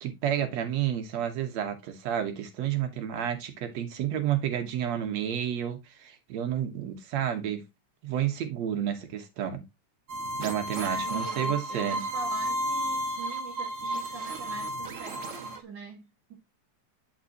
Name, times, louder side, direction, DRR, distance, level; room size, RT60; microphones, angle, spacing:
voice 1, 0.0-7.6 8.0-9.6 10.4-12.0, right 10 dB, 65° right, 2.4 m, -30 dB
sound 1, 10.1-15.6, equal, 85° right, 0.6 m, -32 dB
voice 2, 10.8-16.3, right 5 dB, 40° right, 2.2 m, -44 dB
9.2 x 5.9 x 2.9 m
omnidirectional pair, 3.4 m